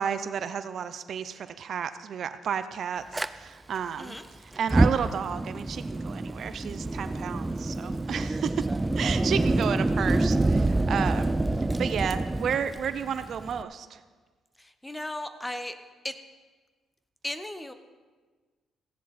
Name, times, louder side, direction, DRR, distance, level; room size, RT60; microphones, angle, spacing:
voice 1, 0.0-4.2 4.6-8.7 9.0-11.3 11.8-14.0, right 7 dB, 60° right, 12 dB, 0.6 m, -32 dB
Fire, 3.1-3.3 4.5-13.6, right 2 dB, 15° right, 0.4 m, -27 dB
voice 2, 14.6-15.7 16.0-16.1 17.2-17.7, left 1 dB, 10° left, 9 dB, 1.0 m, -36 dB
16.0 x 10.0 x 4.2 m, 1.4 s
cardioid pair, 90°, 0 cm